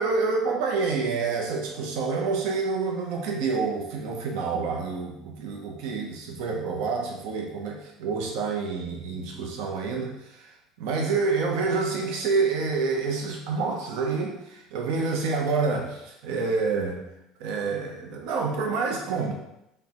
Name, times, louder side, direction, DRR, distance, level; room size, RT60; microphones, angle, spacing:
voice 1, 0.0-17.0 17.4-19.3, right 4 dB, 75° right, 1 dB, 0.6 m, -28 dB
5.0 x 2.1 x 2.9 m, 0.84 s
supercardioid pair, 105°, 0 cm